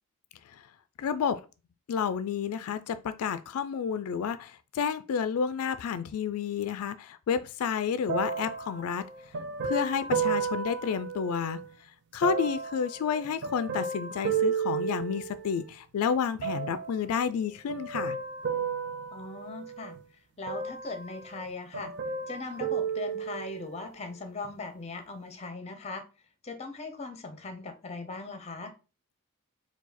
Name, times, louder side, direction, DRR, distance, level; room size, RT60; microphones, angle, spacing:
voice 1, 1.0-1.4 1.9-9.1 9.6-11.6 12.1-18.2, left 7 dB, 85° left, 0.3 m, -30 dB
sound 1, 8.1-11.7 12.2-15.7 16.4-17.1 17.7-20.0 20.5-21.5 21.7-23.8 24.4-24.5, right 6 dB, 55° right, 0.5 m, -33 dB
voice 2, 19.1-20.0 20.4-21.9 22.3-26.0 26.4-28.7, left 3 dB, 30° left, 0.7 m, -39 dB
4.6 x 2.3 x 4.1 m
head